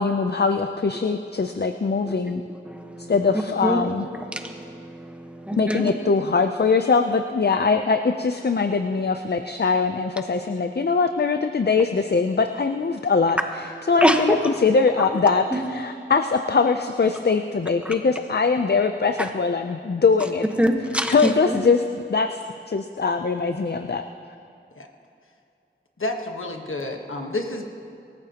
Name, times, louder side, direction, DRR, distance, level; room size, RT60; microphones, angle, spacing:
voice 1, 0.0-2.4 3.1-4.1 5.5-20.4 21.1-22.4 22.7-24.0, left 4 dB, 55° left, 7 dB, 0.5 m, -22 dB
voice 2, 2.6-3.1 3.6-3.9 4.1-5.9 13.9-14.4 17.8-17.9 20.6-21.6, equal, 5° right, 4 dB, 1.1 m, -24 dB
voice 3, 26.0-27.7, left 2 dB, 80° left, 3 dB, 1.3 m, -30 dB
25.5 x 14.0 x 2.9 m, 2.5 s
wide cardioid pair, 50°, 21 cm